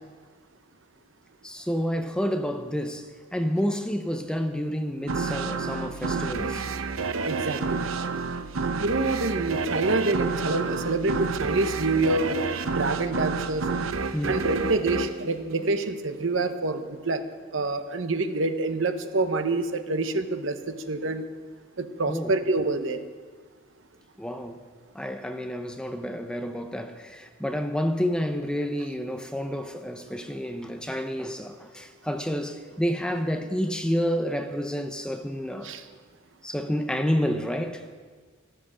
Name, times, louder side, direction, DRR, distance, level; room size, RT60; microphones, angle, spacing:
voice 1, 1.4-6.7 14.1-14.4 22.1-22.3 24.2-24.6 24.9-35.7 36.4-37.9, equal, 5° left, 0.7 m, -29 dB
sound 1, 5.1-16.3, right 4 dB, 85° right, 0.7 m, -30 dB
voice 2, 7.2-7.8 8.8-12.4 12.7-13.7 14.3-17.2 17.5-21.3 21.8-23.0 35.6-35.8, right 2 dB, 70° right, 1.0 m, -27 dB
13.5 x 13.5 x 6.3 m
head